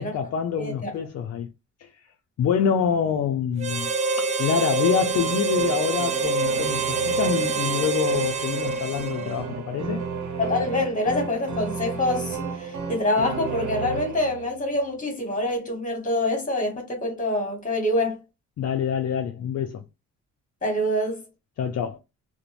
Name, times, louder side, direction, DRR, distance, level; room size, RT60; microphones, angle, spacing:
voice 1, 0.0-1.5 1.8-1.9 2.4-3.9 4.2-10.0 18.6-19.8 21.6-22.0, left 7 dB, 55° left, 0.5 m, -26 dB
voice 2, 0.5-0.9 10.4-18.2 20.6-21.2, left 1 dB, 25° left, 1.4 m, -26 dB
Harmonica, 3.6-9.6, right 4 dB, 25° right, 0.5 m, -26 dB
sound 1, 4.9-14.7, right 5 dB, 70° right, 0.9 m, -33 dB
2.5 x 2.1 x 3.0 m
cardioid pair, 90°, 30 cm